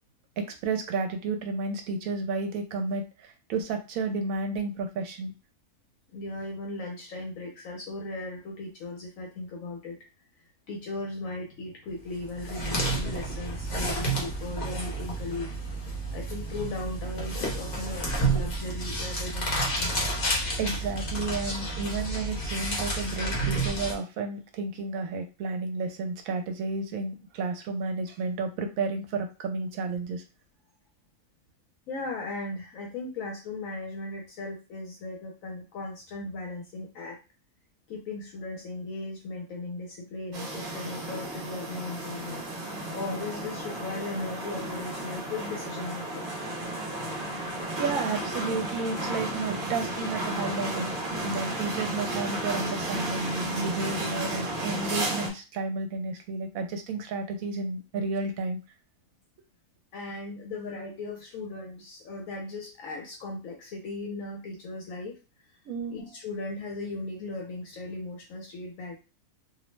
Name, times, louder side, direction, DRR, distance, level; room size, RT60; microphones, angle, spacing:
voice 1, 0.4-5.3 20.6-30.2 47.8-50.9 51.2-58.6 65.7-65.9, right 3 dB, 75° right, 6 dB, 1.0 m, -32 dB
voice 2, 6.1-10.0 10.7-15.6 16.1-20.1 31.9-37.2 37.9-42.4 42.9-46.3 59.9-65.2 65.9-69.0, left 2 dB, 70° left, 0 dB, 1.0 m, -37 dB
sound 1, 12.2-23.9, right 2 dB, 40° left, 0.7 m, -30 dB
sound 2, 40.3-55.3, right 1 dB, 50° right, 0.7 m, -33 dB
2.6 x 2.1 x 3.1 m, 0.31 s
omnidirectional pair, 1.5 m